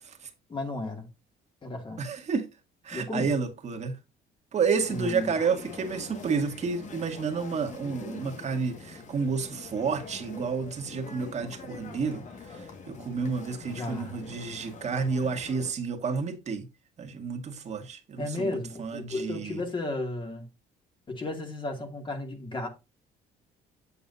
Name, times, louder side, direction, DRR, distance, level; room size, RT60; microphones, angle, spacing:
voice 1, 0.5-1.1 1.6-2.0 2.9-3.3 4.9-5.3 13.6-14.1 18.2-20.5 21.1-22.7, left 2 dB, 30° left, 2.4 m, -34 dB
voice 2, 2.0-2.5 2.8-3.9 4.5-12.2 12.5-16.6 17.0-19.6, right 5 dB, 40° right, 1.8 m, -30 dB
sound 1, 4.8-15.7, left 4 dB, 45° left, 1.9 m, -44 dB
8.4 x 7.8 x 2.7 m
cardioid pair, 110°, 17 cm